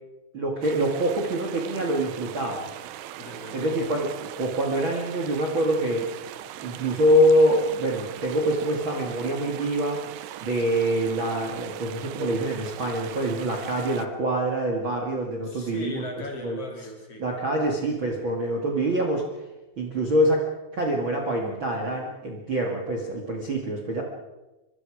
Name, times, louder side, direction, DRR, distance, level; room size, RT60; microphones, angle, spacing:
voice 1, 0.3-2.7 3.5-6.1 6.6-10.0 10.4-16.0 16.4-16.6 17.2-19.2 19.8-20.4 20.7-24.0, right 1 dB, 40° right, 1 dB, 2.1 m, -25 dB
sound 1, 0.6-14.1, right 12 dB, 80° right, 2.9 m, -40 dB
voice 2, 3.2-3.9 15.4-17.3, left 2 dB, 40° left, 1 dB, 3.1 m, -38 dB
25.5 x 22.0 x 5.0 m, 1.1 s
omnidirectional pair, 4.9 m